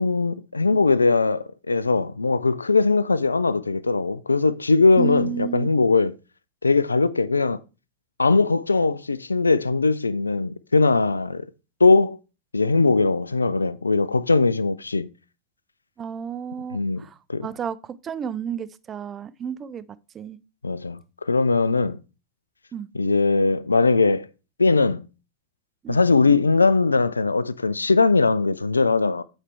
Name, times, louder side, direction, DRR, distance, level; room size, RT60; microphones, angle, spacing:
voice 1, 0.0-6.1 6.6-7.6 8.2-11.5 11.8-12.2 12.5-15.1 16.7-17.5 20.6-21.0 21.3-22.0 22.9-24.3 24.6-25.1 25.9-29.2, left 3 dB, 80° left, 0.3 m, -20 dB
voice 2, 5.0-5.7 16.0-17.8 18.0-19.8 20.1-20.4 22.7-22.9 25.8-26.0, right 8 dB, 25° right, 0.4 m, -32 dB
8.3 x 3.3 x 4.6 m
figure-of-eight pair, 90°, 0 cm